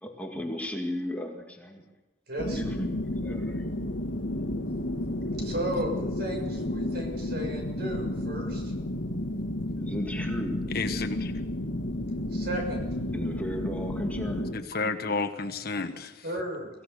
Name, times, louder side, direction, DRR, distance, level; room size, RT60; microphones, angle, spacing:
voice 1, 0.0-1.8 2.4-3.6 9.8-10.6 13.1-14.6, left 1 dB, 10° left, 1 dB, 2.0 m, -35 dB
voice 2, 2.3-2.6 5.4-8.7 12.3-12.9 16.2-16.7, right 1 dB, 55° right, 3 dB, 6.3 m, -34 dB
sound 1, 2.4-14.5, left 1 dB, 70° left, 1.7 m, -32 dB
voice 3, 10.7-11.3 14.5-16.1, left 4 dB, 55° left, 8 dB, 1.4 m, -31 dB
24.0 x 16.0 x 6.8 m, 1.1 s
head